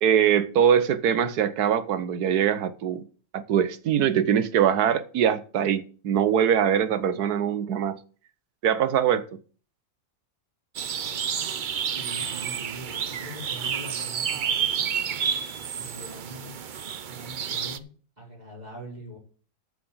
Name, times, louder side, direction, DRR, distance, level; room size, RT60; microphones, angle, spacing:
voice 1, 0.0-3.0 3.3-8.0 8.6-9.3, right 9 dB, 85° right, 1.4 m, -22 dB
Forest Soundscape (Thuringian Forest), 10.7-17.8, right 7 dB, 60° right, 0.5 m, -30 dB
voice 2, 11.7-14.8 15.7-16.6 17.0-19.2, right 1 dB, 25° right, 4.6 m, -42 dB
13.5 x 4.9 x 7.2 m
omnidirectional pair, 1.6 m